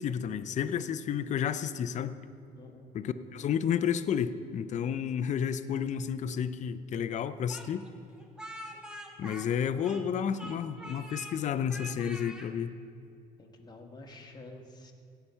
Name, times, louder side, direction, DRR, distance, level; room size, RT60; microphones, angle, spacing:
voice 1, 0.0-2.2 2.9-7.9 9.2-12.7, left 8 dB, 45° left, 12 dB, 0.5 m, -31 dB
voice 2, 2.6-2.9 13.4-14.9, left 2 dB, 25° left, 2 dB, 1.4 m, -49 dB
Speech, 7.5-10.1 10.4-11.4 11.7-12.5, equal, 5° right, 1.2 m, -44 dB
17.0 x 5.8 x 5.6 m, 2.4 s
cardioid pair, 110°, 17 cm